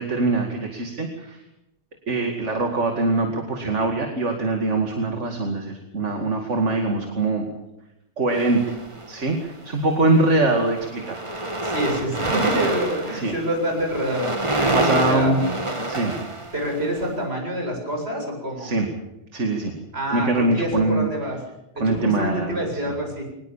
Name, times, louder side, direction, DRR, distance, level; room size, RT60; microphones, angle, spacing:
voice 1, 0.0-1.4 2.1-7.4 8.2-8.8 9.1-11.2 13.1-13.3 14.7-15.4 15.9-16.2 18.6-18.9 19.3-19.7 20.1-21.1 21.8-23.0, right 2 dB, 75° right, 3 dB, 2.7 m, -23 dB
sound 1, 8.3-9.3 10.1-10.3 10.6-17.1, right 2 dB, 25° right, 2.2 m, -27 dB
voice 2, 11.6-15.3 16.5-18.7 19.9-21.4 21.8-23.2, equal, 60° right, 1 dB, 8.2 m, -27 dB
23.5 x 20.0 x 7.4 m, 0.90 s
omnidirectional pair, 1.2 m